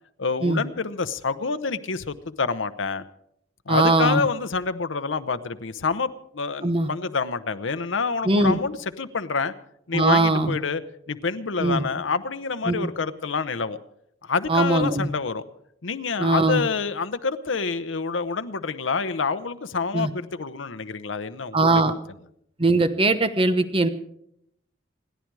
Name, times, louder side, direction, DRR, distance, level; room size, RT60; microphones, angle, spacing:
voice 1, 0.2-3.0 3.7-9.5 9.9-10.8 11.1-13.8 14.2-15.4 15.8-21.7, left 4 dB, 80° left, 10 dB, 0.8 m, -27 dB
voice 2, 3.7-4.2 6.6-6.9 8.2-8.6 9.9-10.6 11.6-11.8 12.7-12.9 14.5-15.1 16.2-16.6 19.9-20.1 21.5-21.9 22.6-23.9, right 2 dB, 30° right, 10 dB, 1.0 m, -20 dB
28.0 x 10.5 x 4.7 m, 0.73 s
head